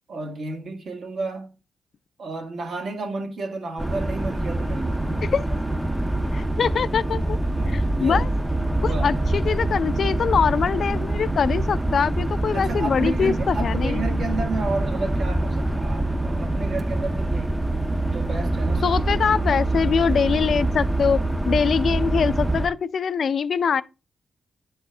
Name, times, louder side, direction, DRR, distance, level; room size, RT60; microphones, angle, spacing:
voice 1, 0.1-1.5 2.2-5.3 7.5-8.2 8.8-9.2 12.5-17.6 18.1-18.9, right 3 dB, 70° right, 1.7 m, -32 dB
sound 1, 3.8-22.7, right 1 dB, 10° right, 0.5 m, -25 dB
voice 2, 5.2-5.6 6.3-7.4 7.7-8.3 8.8-14.0 18.8-23.8, left 6 dB, 65° left, 0.4 m, -23 dB
10.5 x 4.3 x 3.3 m
cardioid pair, 95°, 0 cm